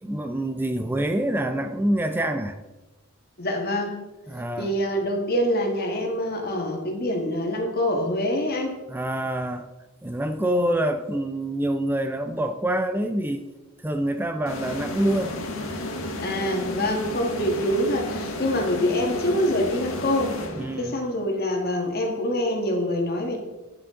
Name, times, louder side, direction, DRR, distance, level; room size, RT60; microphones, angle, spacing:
voice 1, 0.0-2.6 4.3-4.7 8.9-9.7 10.0-13.4 13.8-15.4 20.6-20.9, right 1 dB, 10° right, 7 dB, 0.3 m, -26 dB
voice 2, 3.4-4.0 4.6-8.8 16.2-20.4 20.8-23.4, left 1 dB, 50° left, 2 dB, 1.6 m, -25 dB
sound 1, 14.5-21.1, left 2 dB, 75° left, 1.5 m, -33 dB
9.9 x 6.7 x 3.7 m, 1.1 s
head